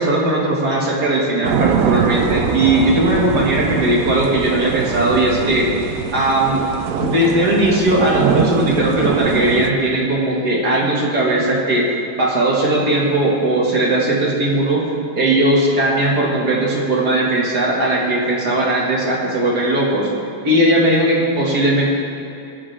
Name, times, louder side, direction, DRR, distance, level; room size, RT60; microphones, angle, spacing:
voice 1, 0.0-5.7 6.1-6.6 7.0-11.9 12.2-14.9 15.1-20.1 20.4-21.9, right 1 dB, 55° right, -4 dB, 2.3 m, -18 dB
sound 1, 1.4-9.7, right 7 dB, 90° right, 0.7 m, -22 dB
21.5 x 7.4 x 3.3 m, 2.7 s
omnidirectional pair, 2.2 m